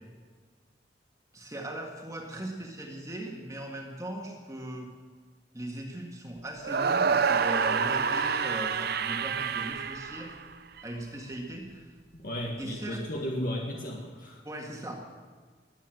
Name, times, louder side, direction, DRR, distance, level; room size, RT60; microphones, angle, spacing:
voice 1, 1.3-4.9 5.5-10.3 10.8-11.9 12.6-13.0 14.4-15.1, right 1 dB, 20° right, 0 dB, 1.8 m, -39 dB
sound 1, 6.6-10.8, right 6 dB, 60° right, 0.6 m, -27 dB
voice 2, 12.1-14.4, equal, 50° left, -1 dB, 1.7 m, -34 dB
21.0 x 8.1 x 7.8 m, 1.5 s
head